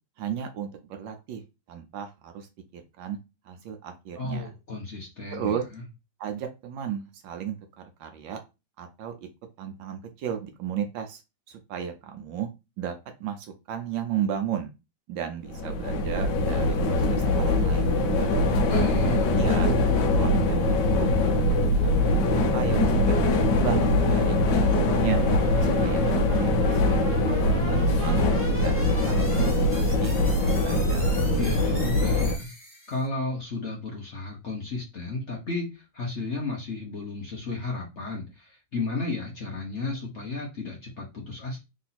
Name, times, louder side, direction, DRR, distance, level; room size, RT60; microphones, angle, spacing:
voice 1, 0.2-1.4 1.7-2.5 2.7-3.2 3.4-4.5 5.3-5.6 6.2-8.4 8.8-9.3 9.6-11.2 11.5-12.5 12.8-14.7 15.1-18.4 19.3-19.8 20.1-21.9 22.5-25.2 25.6-28.2 28.6-28.8 29.1-31.1, right 9 dB, 70° right, 5 dB, 1.3 m, -34 dB
voice 2, 4.1-5.8 18.7-19.4 31.3-32.5 32.9-41.6, left 3 dB, 45° left, -2 dB, 1.1 m, -33 dB
sound 1, 15.5-32.4, left 1 dB, 65° left, 1.3 m, -22 dB
sound 2, 20.3-33.1, left 1 dB, 5° right, 1.2 m, -39 dB
3.8 x 2.7 x 4.1 m, 0.26 s
omnidirectional pair, 2.2 m